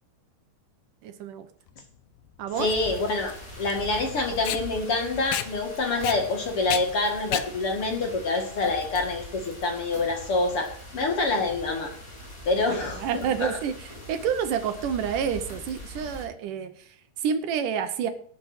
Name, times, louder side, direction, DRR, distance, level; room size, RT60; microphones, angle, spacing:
voice 1, 1.0-1.5 2.4-2.7 12.7-18.1, right 7 dB, 75° right, 9 dB, 2.3 m, -29 dB
Packing tape duct tape, 1.7-9.2, left 12 dB, 85° left, 2.7 m, -35 dB
sound 1, 2.5-16.3, equal, 10° left, 3.7 m, -42 dB
voice 2, 2.6-11.9 12.5-13.5, left 3 dB, 45° left, 2 dB, 2.5 m, -26 dB
18.5 x 6.3 x 4.9 m, 0.62 s
omnidirectional pair, 4.0 m